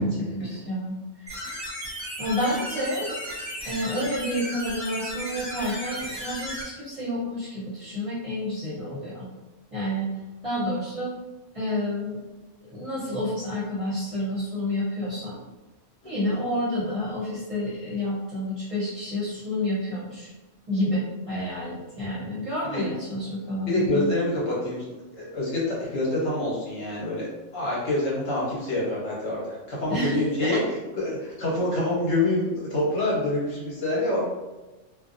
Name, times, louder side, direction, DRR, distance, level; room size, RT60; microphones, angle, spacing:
voice 1, 0.0-1.4 2.2-3.1 3.6-9.3 9.7-10.1 10.4-11.1 11.5-12.2 12.6-15.4 16.0-20.3 20.7-24.1 29.9-30.6, left 1 dB, 35° right, -10 dB, 0.7 m, -29 dB
sound 1, 1.3-6.6, equal, 15° right, 1.0 m, -35 dB
voice 2, 23.7-24.8 25.1-27.3 27.5-30.6 31.0-34.2, left 1 dB, 65° left, -6 dB, 1.2 m, -26 dB
2.5 x 2.1 x 2.5 m, 1.1 s
omnidirectional pair, 1.3 m